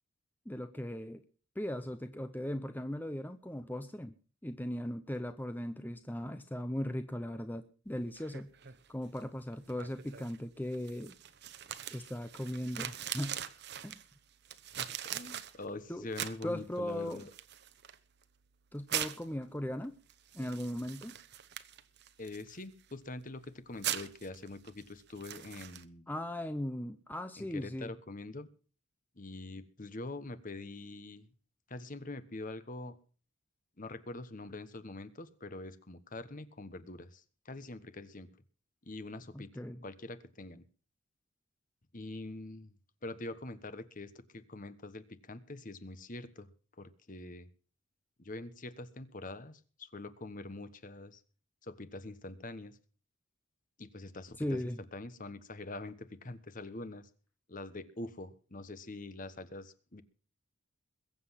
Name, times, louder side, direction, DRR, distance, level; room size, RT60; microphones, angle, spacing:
voice 1, 0.5-1.2 1.6-4.1 4.4-8.5 8.9-11.1 11.9-13.4 13.8-14.0 15.9-16.1 16.4-17.2 18.7-19.9 20.3-21.2 26.1-27.9 39.3-39.8 54.4-54.8, left 1 dB, 10° left, 9 dB, 0.7 m, -38 dB
sound 1, 7.9-25.8, right 10 dB, 50° right, 1.0 m, -44 dB
voice 2, 14.8-17.3 22.2-26.1 27.4-28.5 29.2-31.3 31.7-33.0 33.8-38.3 38.8-39.5 39.8-40.6 41.9-42.7 43.0-46.5 46.8-47.5 48.2-51.2 51.6-52.8 53.8-54.6 54.9-57.1 57.5-60.0, left 2 dB, 40° left, 13 dB, 1.2 m, -44 dB
22.0 x 7.9 x 5.7 m, 0.40 s
head